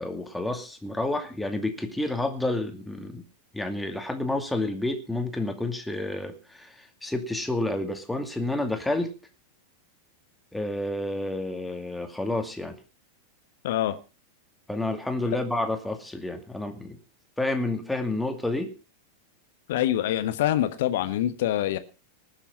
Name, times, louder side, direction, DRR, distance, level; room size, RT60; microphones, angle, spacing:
voice 1, 0.0-3.2 3.5-9.1 10.5-12.8 14.7-17.0 17.4-18.7, left 2 dB, 5° left, 5 dB, 2.4 m, -30 dB
voice 2, 13.6-14.0 19.7-21.8, left 12 dB, 55° left, 11 dB, 1.4 m, -25 dB
20.0 x 7.1 x 5.5 m, 0.34 s
figure-of-eight pair, 90°, 0 cm